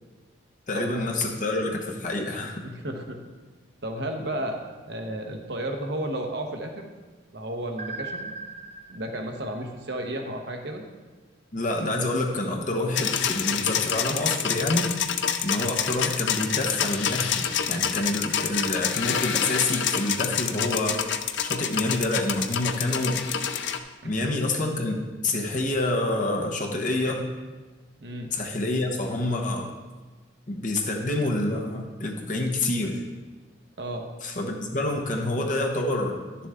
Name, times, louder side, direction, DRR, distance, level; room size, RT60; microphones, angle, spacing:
voice 1, 0.7-2.6 11.5-14.9 15.4-23.2 24.0-27.3 28.3-29.7 30.5-33.0 34.2-36.1, left 2 dB, 40° left, 1 dB, 1.0 m, -27 dB
voice 2, 2.6-3.2 3.8-4.6 4.8-6.9 7.3-8.3 8.9-10.8 28.0-28.3 33.8-34.1, right 1 dB, 55° right, 3 dB, 0.9 m, -32 dB
sound 1, 7.8-10.7, right 3 dB, 35° right, 0.4 m, -40 dB
sound 2, 12.9-23.8, left 8 dB, 65° left, 0.5 m, -27 dB
10.5 x 7.0 x 3.6 m, 1.3 s
head